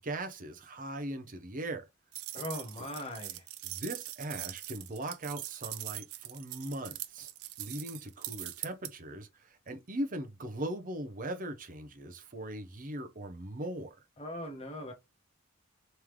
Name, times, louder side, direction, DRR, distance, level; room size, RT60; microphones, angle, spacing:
voice 1, 0.0-1.8 3.6-7.3 7.6-14.0, right 1 dB, 40° right, 0.7 m, -39 dB
sound 1, 2.1-8.9, right 15 dB, 80° right, 0.4 m, -42 dB
voice 2, 2.3-3.5 14.2-14.9, left 1 dB, 25° left, 0.9 m, -40 dB
3.6 x 3.2 x 3.1 m
head